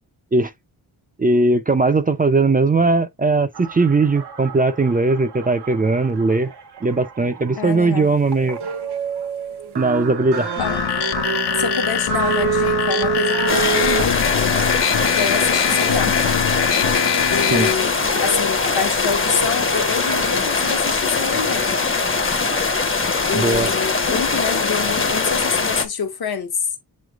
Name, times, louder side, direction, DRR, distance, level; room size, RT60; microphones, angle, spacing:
voice 1, 1.2-6.5 6.8-8.6 9.8-10.5 17.5-17.7 23.3-23.7, right 3 dB, 20° right, 0.4 m, -18 dB
sound 1, 3.5-21.0, right 6 dB, 75° right, 0.8 m, -29 dB
voice 2, 7.6-8.1 10.6-10.8 11.5-14.5 15.2-16.3 17.3-21.8 23.3-26.5, left 6 dB, 65° left, 1.0 m, -26 dB
sound 2, 10.6-17.7, left 9 dB, 80° left, 0.6 m, -23 dB
sound 3, 13.5-25.9, left 4 dB, 30° left, 0.8 m, -21 dB
7.1 x 3.2 x 2.3 m
wide cardioid pair, 85°, 40 cm